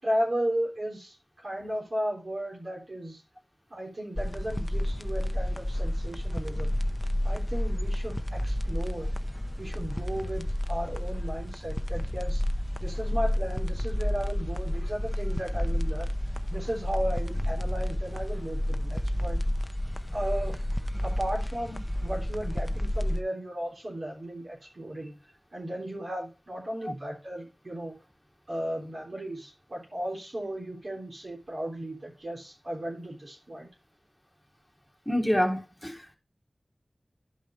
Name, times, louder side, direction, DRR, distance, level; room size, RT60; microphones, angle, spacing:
voice 1, 0.0-3.2 3.7-6.8 7.2-9.1 9.6-12.4 12.8-16.1 16.5-19.4 20.1-25.1 25.5-27.9 28.5-33.7, right 1 dB, 70° right, 3.5 m, -35 dB
sound 1, 4.2-23.2, left 1 dB, 20° left, 0.7 m, -30 dB
voice 2, 35.1-36.2, equal, 5° left, 1.8 m, -27 dB
11.5 x 5.4 x 3.2 m
wide cardioid pair, 45°, 0 cm